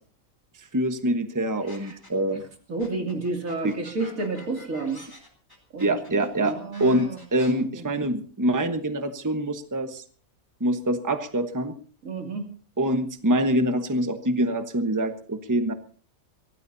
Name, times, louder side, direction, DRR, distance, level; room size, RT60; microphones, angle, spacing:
voice 1, 0.7-2.4 3.6-3.7 5.8-6.5 6.8-10.0 10.6-11.7 12.8-15.7, right 1 dB, 15° right, 7 dB, 1.1 m, -25 dB
sound 1, 1.7-2.3 2.8-7.5, left 1 dB, 15° left, 3.8 m, -47 dB
voice 2, 2.7-5.0 5.7-7.2 7.5-7.8 12.0-12.5, right 3 dB, 80° right, 2 dB, 3.3 m, -31 dB
24.0 x 17.0 x 2.8 m, 0.41 s
omnidirectional pair, 1.4 m